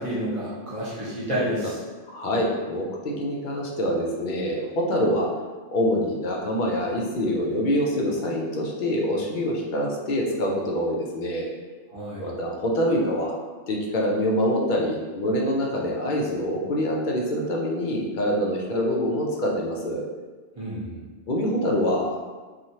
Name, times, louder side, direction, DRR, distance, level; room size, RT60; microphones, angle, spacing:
voice 1, 0.0-1.7 11.9-12.3 20.6-21.0, equal, 30° right, -9 dB, 0.9 m, -29 dB
voice 2, 2.1-5.3 5.7-11.5 12.2-13.3 13.7-20.0 21.3-22.3, equal, 55° left, -1 dB, 0.5 m, -25 dB
3.1 x 2.4 x 2.7 m, 1.3 s
omnidirectional pair, 1.2 m